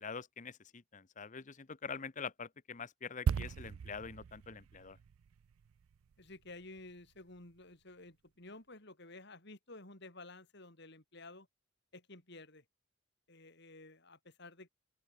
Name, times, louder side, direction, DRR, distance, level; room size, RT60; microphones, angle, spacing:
voice 1, 0.0-5.0, left 5 dB, 35° left, 0.7 m, -45 dB
sound 1, 3.3-6.9 7.2-7.4, right 6 dB, 85° right, 0.4 m, -38 dB
voice 2, 6.2-11.5 11.9-12.6 13.3-14.7, left 2 dB, 55° left, 4.2 m, -53 dB
open air
head